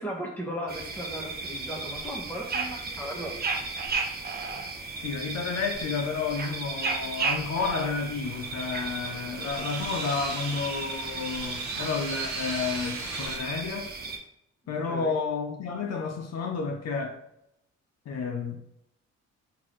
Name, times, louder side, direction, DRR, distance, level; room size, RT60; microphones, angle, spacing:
voice 1, 0.0-3.3 14.8-15.1, equal, 5° left, 1.1 m, -36 dB
sound 1, 0.7-14.2, right 4 dB, 30° right, 0.6 m, -34 dB
voice 2, 5.0-13.9 14.7-17.2 18.1-18.6, left 5 dB, 60° left, 0.6 m, -31 dB
sound 2, 8.2-13.4, right 3 dB, 65° right, 0.9 m, -38 dB
3.8 x 2.6 x 3.1 m
cardioid pair, 90°, 30 cm